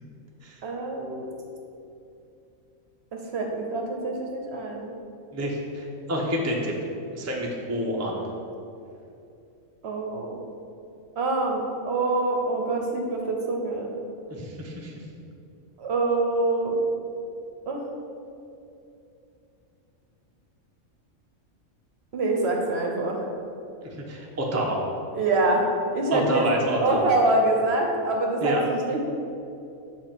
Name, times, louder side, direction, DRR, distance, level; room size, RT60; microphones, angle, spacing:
voice 1, 0.6-1.3 3.1-4.9 9.8-10.4 11.2-13.9 15.8-16.8 17.7-17.9 22.1-23.2 25.1-26.5 26.8-29.0, right 2 dB, 60° right, 1 dB, 0.9 m, -25 dB
voice 2, 5.3-6.7 7.1-8.2 14.3-14.9 23.8-24.8 26.1-27.1 28.4-28.6, equal, 20° right, -2 dB, 0.5 m, -28 dB
6.8 x 3.0 x 5.8 m, 2.7 s
omnidirectional pair, 1.4 m